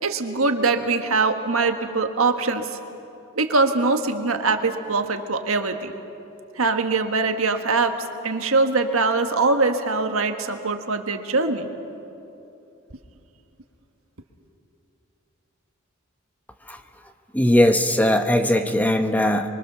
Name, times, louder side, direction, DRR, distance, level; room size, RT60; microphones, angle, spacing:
voice 1, 0.0-2.7 3.4-5.9 6.6-7.9 8.2-11.7, right 3 dB, 75° right, 6 dB, 1.5 m, -22 dB
voice 2, 17.3-19.5, left 1 dB, 10° left, 6 dB, 1.0 m, -19 dB
24.5 x 23.5 x 6.9 m, 2.8 s
head